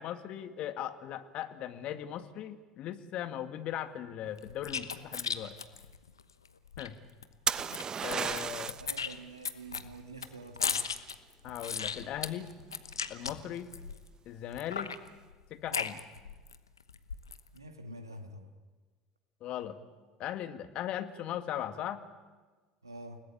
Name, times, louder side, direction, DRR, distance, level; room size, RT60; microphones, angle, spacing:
voice 1, 0.0-5.6 6.8-7.0 8.0-8.8 11.4-12.5 13.1-13.7 14.3-14.9 15.5-16.0 19.4-19.8 20.2-22.0, left 11 dB, 50° left, 9 dB, 2.0 m, -38 dB
sound 1, 4.4-6.9 7.2-7.3 7.5-8.4 8.7-14.1 14.5-16.6 16.9-17.5, left 6 dB, 85° left, 1.1 m, -36 dB
sound 2, 7.5-8.9 12.6-13.0, right 7 dB, 30° right, 1.0 m, -33 dB
voice 2, 8.8-10.9 17.5-18.5 22.8-23.2, right 2 dB, 90° right, 6 dB, 2.0 m, -47 dB
29.5 x 19.0 x 8.7 m, 1.3 s
figure-of-eight pair, 65°, 2 cm